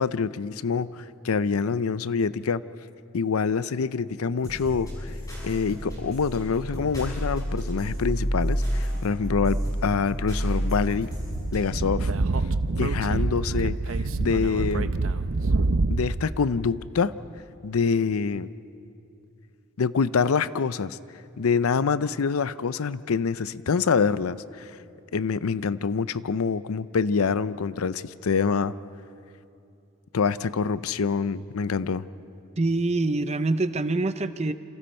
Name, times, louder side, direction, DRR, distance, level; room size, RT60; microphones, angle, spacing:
voice 1, 0.0-2.6 3.1-4.9 5.4-11.1 11.5-12.1 12.8-13.8 14.2-14.9 15.9-17.1 17.6-18.5 19.8-21.0 21.4-24.7 25.1-28.7 30.1-32.0, left 5 dB, 90° left, 16 dB, 0.5 m, -25 dB
sound 1, 4.4-11.8, equal, 15° left, 7.8 m, -30 dB
Speech / Wind, 11.3-16.2, right 3 dB, 75° right, 0.7 m, -26 dB
voice 2, 32.6-34.5, right 2 dB, 30° right, 12 dB, 0.6 m, -25 dB
28.5 x 26.5 x 4.4 m, 2.6 s
head